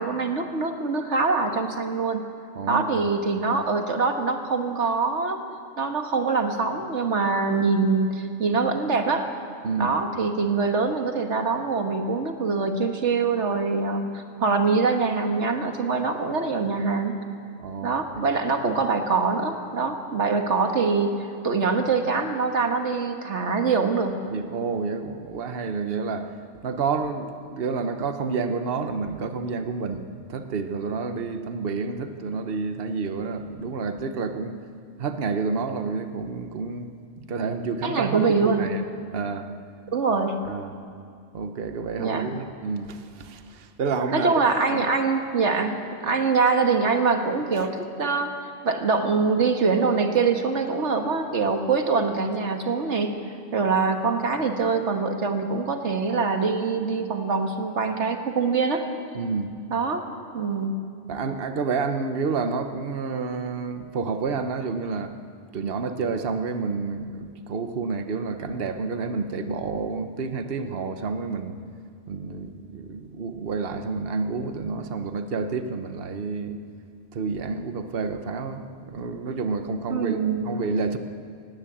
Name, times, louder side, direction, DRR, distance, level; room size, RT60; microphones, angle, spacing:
voice 1, 0.0-2.3 2.7-5.4 5.8-9.3 9.8-17.2 17.8-24.2 37.8-38.7 39.9-40.4 42.0-42.3 44.1-48.4 48.6-53.2 53.5-58.8 59.7-60.0 60.3-60.8 79.9-80.5, right 4 dB, 75° right, 5 dB, 1.8 m, -24 dB
voice 2, 2.5-3.0 9.6-10.0 17.6-18.3 24.3-26.3 26.6-34.6 35.0-36.9 37.2-38.8 39.1-39.5 40.5-40.7 41.3-44.3 44.7-44.9 46.0-46.1 47.6-47.7 59.1-59.5 61.1-65.1 65.5-71.6 72.1-76.6 77.1-81.0, right 4 dB, 55° right, 8 dB, 1.2 m, -29 dB
18.5 x 17.0 x 8.6 m, 2.3 s
omnidirectional pair, 1.2 m